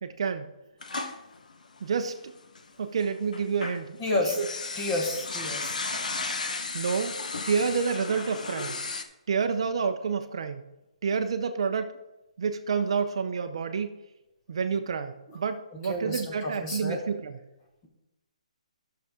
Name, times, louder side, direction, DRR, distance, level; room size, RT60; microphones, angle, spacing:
voice 1, 0.0-0.5 1.8-2.3 2.8-4.0 6.7-7.2 7.5-8.8 9.3-10.6 11.0-11.9 12.4-14.0 14.5-17.3, right 5 dB, 45° right, 9 dB, 0.5 m, -29 dB
sound 1, 0.8-2.6 3.0-9.0, left 3 dB, 85° left, 1.1 m, -34 dB
voice 2, 4.0-4.4 4.8-5.8 15.3-15.4 15.7-17.0, left 2 dB, 15° left, 0 dB, 1.3 m, -30 dB
12.0 x 6.7 x 3.7 m, 0.99 s
hypercardioid pair, 175°, 4 cm